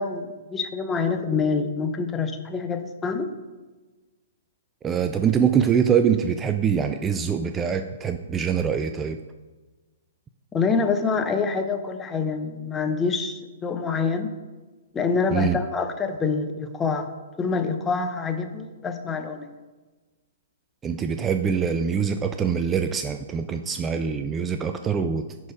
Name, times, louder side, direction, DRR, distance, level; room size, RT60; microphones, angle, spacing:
voice 1, 0.0-3.3 10.5-14.3 14.9-17.1 17.4-19.5, left 4 dB, 15° left, 6 dB, 0.7 m, -26 dB
voice 2, 4.8-9.2 15.3-15.6 20.8-25.3, right 7 dB, 15° right, 8 dB, 0.4 m, -24 dB
10.5 x 4.2 x 4.8 m, 1.3 s
figure-of-eight pair, 120°, 0 cm